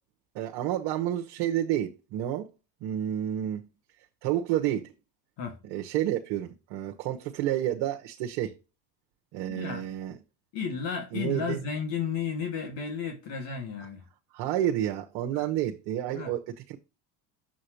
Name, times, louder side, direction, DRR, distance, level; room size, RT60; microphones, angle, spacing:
voice 1, 0.3-2.5 2.8-3.6 4.2-4.9 5.7-8.5 9.3-10.2 11.1-11.6 14.3-16.8, right 12 dB, 65° right, 1.2 m, -30 dB
voice 2, 9.5-9.9 10.5-14.0 15.3-15.5 16.1-16.3, left 6 dB, 60° left, 2.1 m, -33 dB
7.2 x 6.3 x 3.0 m
hypercardioid pair, 75°, 49 cm